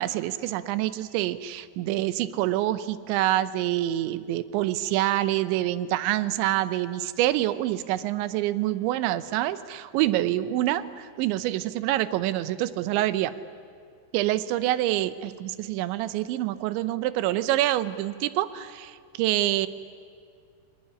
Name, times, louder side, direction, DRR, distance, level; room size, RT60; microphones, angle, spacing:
voice 1, 0.0-13.3 14.1-19.7, right 14 dB, 85° right, 15 dB, 3.2 m, -26 dB
30.0 x 19.5 x 10.0 m, 2.2 s
omnidirectional pair, 5.1 m